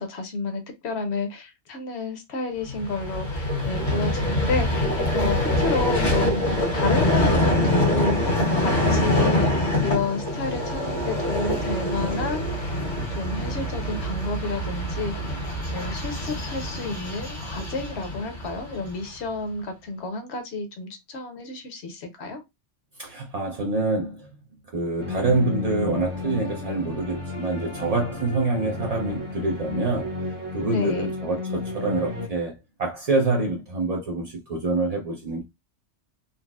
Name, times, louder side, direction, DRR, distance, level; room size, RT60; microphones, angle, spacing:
voice 1, 0.0-12.8 13.1-15.4 15.7-22.4 30.6-31.1, left 3 dB, 70° left, 0.9 m, -31 dB
Vehicle, 2.7-19.0, left 1 dB, 90° left, 1.7 m, -25 dB
voice 2, 23.0-24.3 24.7-30.1 30.5-32.5 32.8-35.4, right 3 dB, 55° right, 0.4 m, -26 dB
sound 1, 25.0-32.3, left 3 dB, 30° right, 0.8 m, -32 dB
3.9 x 2.0 x 2.2 m
omnidirectional pair, 1.2 m